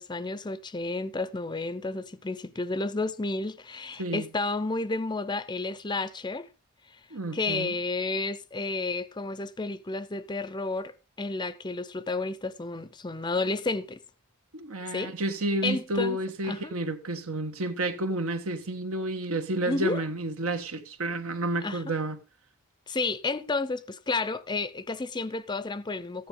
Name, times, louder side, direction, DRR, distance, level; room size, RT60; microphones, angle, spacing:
voice 1, 0.0-6.5 7.3-14.0 14.9-15.1 15.6-16.2 16.5-16.7 19.7-20.0 21.6-21.9 22.9-26.3, left 3 dB, 20° left, 0.6 m, -31 dB
voice 2, 7.1-7.7 14.5-22.2, right 2 dB, 70° right, 1.4 m, -30 dB
14.5 x 10.0 x 3.8 m
head